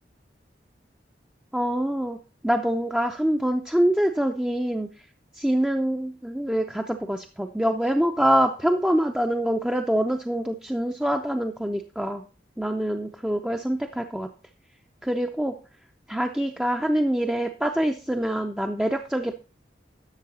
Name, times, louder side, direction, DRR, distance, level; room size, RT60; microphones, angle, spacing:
voice 1, 1.5-2.2 2.4-5.1 5.3-12.2 12.6-14.3 15.0-15.6 16.1-19.3, equal, 5° right, 3 dB, 0.5 m, -25 dB
11.5 x 6.8 x 4.1 m, 0.33 s
head